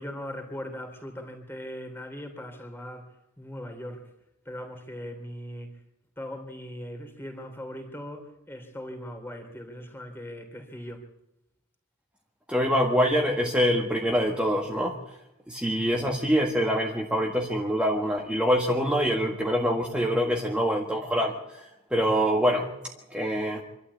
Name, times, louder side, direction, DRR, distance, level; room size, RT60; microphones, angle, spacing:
voice 1, 0.0-4.1 4.4-5.8 6.2-11.1, equal, 10° left, 3.2 m, -39 dB
voice 2, 12.5-15.0 15.5-22.7 23.1-23.6, equal, 5° right, 1.7 m, -25 dB
26.5 x 12.5 x 8.4 m
head